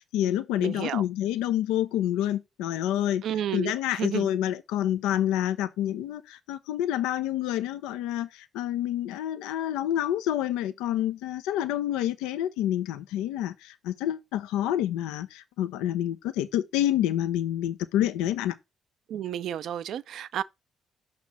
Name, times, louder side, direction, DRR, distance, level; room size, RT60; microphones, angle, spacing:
voice 1, 0.0-3.2 3.5-18.5, left 12 dB, 80° left, 0.4 m, -28 dB
voice 2, 0.6-1.0 3.2-4.3 19.1-20.4, right 10 dB, 70° right, 0.4 m, -32 dB
6.1 x 4.3 x 3.9 m
hypercardioid pair, 45°, 0 cm